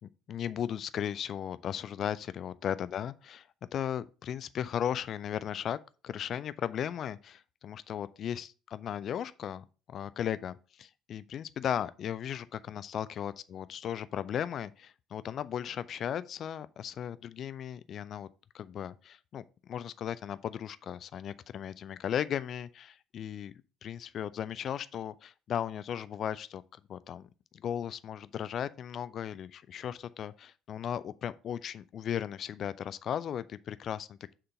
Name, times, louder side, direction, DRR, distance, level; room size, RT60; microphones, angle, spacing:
voice 1, 0.0-18.3 18.5-23.5 23.8-26.6 26.9-34.3, left 9 dB, 45° left, 0.4 m, -36 dB
6.7 x 3.8 x 5.7 m
figure-of-eight pair, 55°, 0 cm